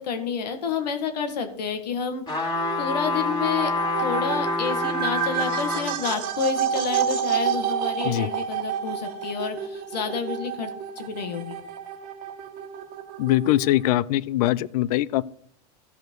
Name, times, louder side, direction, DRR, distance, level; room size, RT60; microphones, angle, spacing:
voice 1, 0.0-3.7 4.0-10.7 11.0-11.6, left 6 dB, 90° left, 7 dB, 1.9 m, -29 dB
sound 1, 2.3-5.9 6.4-6.5, left 3 dB, 20° left, 2.8 m, -27 dB
sound 2, 2.6-13.8, right 8 dB, 45° right, 1.4 m, -29 dB
voice 2, 13.2-15.2, left 15 dB, 65° left, 20 dB, 0.5 m, -22 dB
15.5 x 5.3 x 4.6 m, 0.65 s
supercardioid pair, 130°, 21 cm